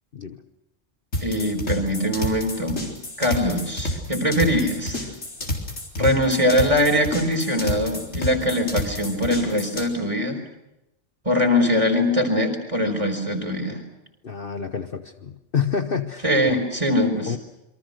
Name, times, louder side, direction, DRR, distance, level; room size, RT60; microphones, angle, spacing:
sound 1, 1.1-9.9, left 1 dB, 85° left, 4.3 m, -29 dB
voice 1, 1.2-2.8 3.2-5.0 6.0-10.4 11.3-13.8 16.2-17.3, left 1 dB, 25° right, 5 dB, 4.2 m, -22 dB
voice 2, 14.2-16.3 17.3-17.4, left 6 dB, 50° left, 7 dB, 1.2 m, -28 dB
28.0 x 23.5 x 6.5 m, 0.91 s
omnidirectional pair, 1.3 m